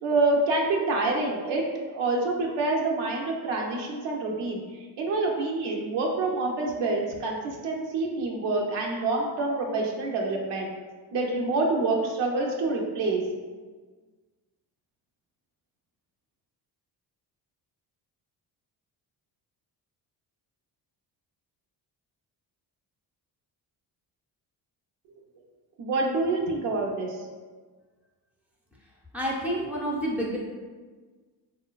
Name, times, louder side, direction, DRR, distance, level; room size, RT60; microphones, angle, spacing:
voice 1, 0.0-4.6 5.0-10.7 11.1-13.2 25.8-27.2, right 2 dB, 90° right, 0 dB, 0.5 m, -27 dB
voice 2, 29.1-30.4, equal, 5° right, -4 dB, 0.3 m, -29 dB
3.8 x 2.0 x 2.2 m, 1.4 s
cardioid pair, 145°, 41 cm